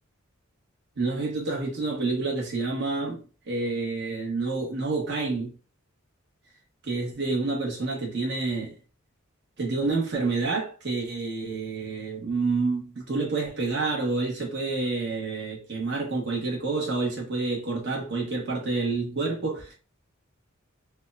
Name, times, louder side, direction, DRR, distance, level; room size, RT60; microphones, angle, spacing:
voice 1, 1.0-5.5 6.8-8.7 9.6-19.7, right 3 dB, 55° right, 1.1 m, -28 dB
4.6 x 2.1 x 2.5 m
head